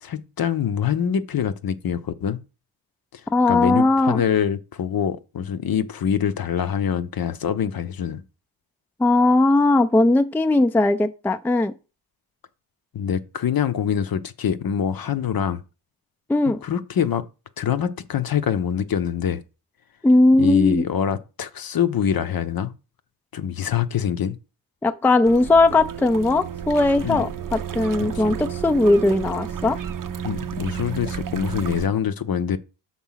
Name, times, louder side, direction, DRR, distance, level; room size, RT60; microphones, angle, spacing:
voice 1, 0.0-2.4 3.1-3.2 3.5-8.2 12.9-15.6 16.6-17.2 17.6-19.4 20.4-22.7 23.3-24.4 27.0-27.3 28.0-28.2 30.2-32.6, left 8 dB, 55° left, 0.7 m, -24 dB
voice 2, 3.3-4.2 9.0-11.7 16.3-16.6 20.0-20.8 24.8-29.8, left 2 dB, 5° left, 0.4 m, -18 dB
sound 1, 25.2-31.9, right 8 dB, 50° right, 0.6 m, -31 dB
6.0 x 4.0 x 5.6 m
cardioid pair, 70°, 44 cm